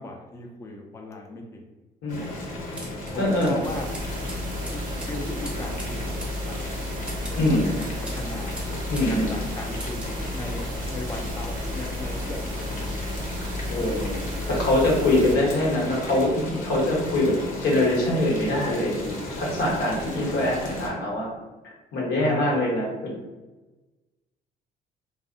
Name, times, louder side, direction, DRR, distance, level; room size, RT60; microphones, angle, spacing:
voice 1, 0.0-1.7 2.2-2.3 3.1-3.9 4.7-8.6 9.3-13.1 22.2-22.6, left 2 dB, 15° left, 1 dB, 0.3 m, -38 dB
Boiling, 2.1-20.9, left 1 dB, 50° left, 0.8 m, -35 dB
sound 1, 2.8-9.1 9.4-10.2, right 1 dB, 5° right, 0.7 m, -43 dB
voice 2, 3.1-3.6 7.4-7.7 8.9-9.3 13.7-21.3 21.9-23.1, left 1 dB, 80° left, -3 dB, 1.0 m, -24 dB
sound 2, 3.6-15.4, left 1 dB, 55° right, 0.4 m, -33 dB
2.6 x 2.0 x 2.6 m, 1.2 s
cardioid pair, 110°, 17 cm